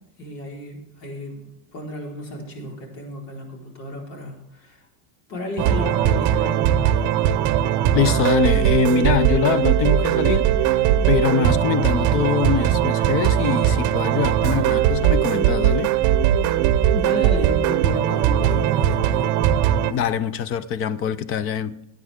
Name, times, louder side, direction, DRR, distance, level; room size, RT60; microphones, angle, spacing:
voice 1, 0.2-1.4 1.7-4.8 5.3-7.1 16.9-19.4, equal, 85° left, 4.4 m, -32 dB
sound 1, 5.6-19.9, right 10 dB, 40° right, 0.8 m, -19 dB
voice 2, 7.9-10.5 11.1-15.9 19.9-21.8, left 7 dB, 30° left, 0.4 m, -23 dB
17.5 x 9.2 x 3.5 m
cardioid pair, 155°, 46 cm